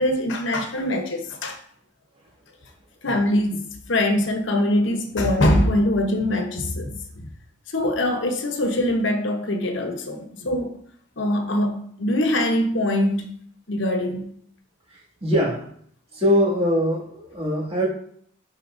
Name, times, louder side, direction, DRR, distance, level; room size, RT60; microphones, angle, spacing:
voice 1, 0.0-1.6 3.0-7.3 7.7-10.7 11.2-13.3 13.7-14.3, left 1 dB, 80° left, 5 dB, 1.0 m, -23 dB
voice 2, 15.2-15.6 16.1-17.9, equal, 30° right, -4 dB, 2.1 m, -21 dB
11.0 x 4.3 x 2.6 m, 0.62 s
head